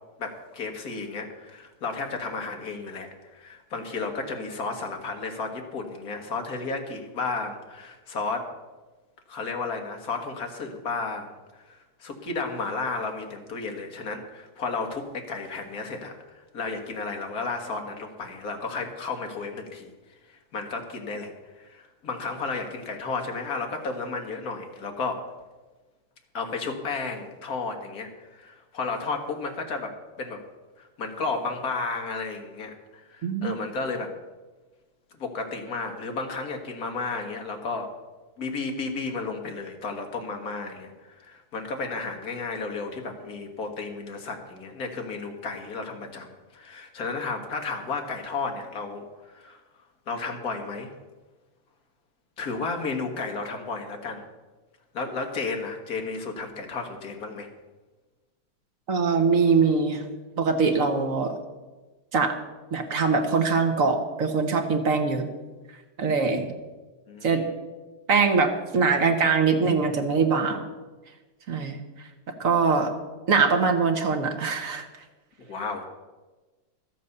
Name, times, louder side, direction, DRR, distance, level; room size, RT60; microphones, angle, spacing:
voice 1, 0.2-8.5 9.3-11.3 11.7-19.9 20.3-25.2 26.3-30.4 30.8-34.1 35.2-37.9 38.4-49.6 50.1-50.9 52.4-54.2 54.9-57.5 67.1-67.5 75.4-75.9, left 4 dB, 45° left, 4 dB, 1.8 m, -33 dB
voice 2, 33.2-33.6 58.9-60.0 60.4-61.3 62.1-62.4 62.7-65.3 66.0-66.4 67.2-67.4 68.1-70.7 71.5-71.8 72.4-72.9 73.3-74.8, right 4 dB, 45° right, 5 dB, 1.2 m, -22 dB
12.5 x 8.4 x 6.6 m, 1.2 s
omnidirectional pair, 2.4 m